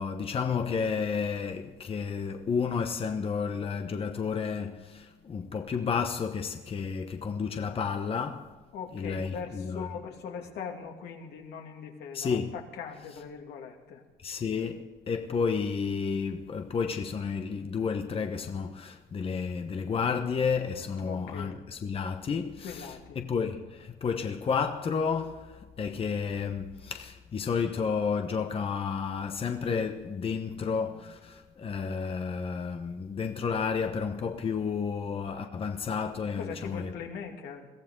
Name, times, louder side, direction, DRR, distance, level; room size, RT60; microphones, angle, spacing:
voice 1, 0.0-8.5 8.9-9.9 12.1-12.5 14.2-36.9, left 5 dB, 35° left, 1.1 m, -31 dB
voice 2, 8.7-14.0 21.0-21.6 22.6-23.2 36.4-37.7, left 6 dB, 75° left, 2.7 m, -40 dB
22.5 x 15.0 x 3.9 m
cardioid pair, 110°, 17 cm